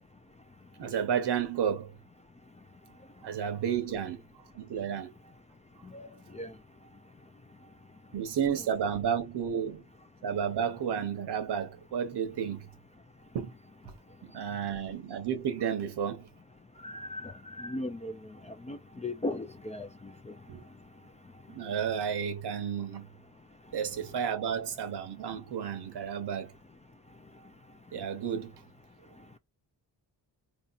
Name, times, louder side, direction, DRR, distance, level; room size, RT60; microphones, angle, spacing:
voice 1, 0.8-1.9 3.2-4.2 4.5-5.1 8.1-9.8 10.2-12.7 13.3-13.5 13.9-14.0 14.2-16.3 20.5-20.6 21.5-23.1 23.7-26.5 27.9-28.5, right 8 dB, 75° right, 1.0 m, -32 dB
voice 2, 16.8-17.3 17.6-18.1 18.7-19.9, left 2 dB, 20° left, 0.3 m, -36 dB
4.6 x 2.9 x 2.4 m
wide cardioid pair, 160°, 40 cm